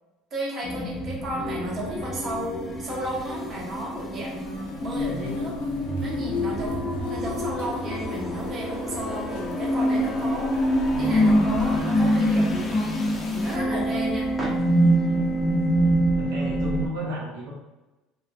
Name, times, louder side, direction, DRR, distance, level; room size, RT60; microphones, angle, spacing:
voice 1, 0.3-10.5 11.0-13.0 13.3-14.3, right 1 dB, 35° right, -4 dB, 1.0 m, -33 dB
sound 1, 0.6-16.9, equal, 25° left, 0.5 m, -25 dB
sound 2, 3.8-11.8, left 4 dB, 90° left, 0.3 m, -42 dB
sound 3, 9.9-15.3, right 1 dB, 10° right, 1.0 m, -44 dB
voice 2, 16.2-17.5, equal, 85° right, -4 dB, 0.7 m, -33 dB
3.1 x 2.0 x 2.4 m, 1.1 s
supercardioid pair, 90°, 0 cm